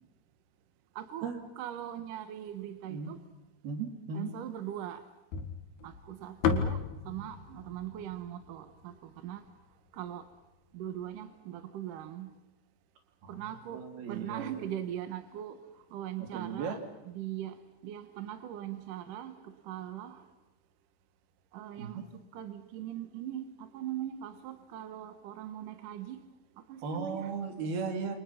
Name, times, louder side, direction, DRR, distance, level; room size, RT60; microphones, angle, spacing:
voice 1, 1.0-1.3 1.6-3.2 4.1-5.0 5.8-9.4 9.9-10.3 10.7-12.3 13.3-15.6 15.9-20.3 21.5-22.1 22.3-26.2 26.7-27.3, right 11 dB, 65° right, 10 dB, 2.6 m, -41 dB
voice 2, 3.6-4.3 13.2-13.4 13.7-14.7 16.3-16.8 21.8-21.9 26.8-28.2, right 5 dB, 85° right, 5 dB, 4.6 m, -36 dB
sound 1, 5.3-9.6, left 6 dB, 80° left, 3.5 m, -34 dB
29.0 x 26.0 x 5.8 m, 0.95 s
omnidirectional pair, 4.3 m